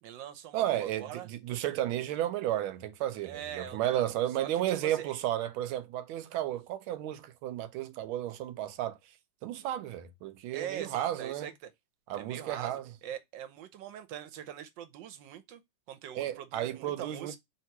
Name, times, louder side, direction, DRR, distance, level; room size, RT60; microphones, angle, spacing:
voice 1, 0.0-1.3 3.2-4.0 4.4-5.2 10.5-11.7 12.1-15.6 15.9-17.4, right 10 dB, 75° right, 1.2 m, -42 dB
voice 2, 0.5-9.0 9.4-11.5 12.1-12.8 16.1-17.4, right 12 dB, 90° right, 1.4 m, -33 dB
3.2 x 2.9 x 4.3 m
omnidirectional pair, 2.2 m